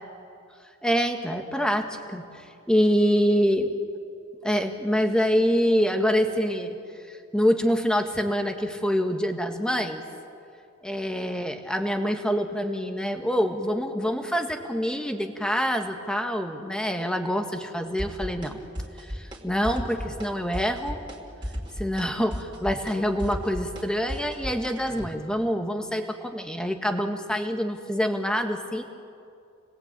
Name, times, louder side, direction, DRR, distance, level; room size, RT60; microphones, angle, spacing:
voice 1, 0.8-3.7 4.4-6.8 7.1-10.0 10.8-18.6 19.1-21.0 21.8-28.8, equal, 5° left, 5 dB, 1.7 m, -26 dB
sound 1, 18.0-18.5 18.8-19.4 19.6-20.3 20.5-21.2 21.4-25.1, equal, 25° right, 3.6 m, -34 dB
29.5 x 20.5 x 8.9 m, 2.5 s
head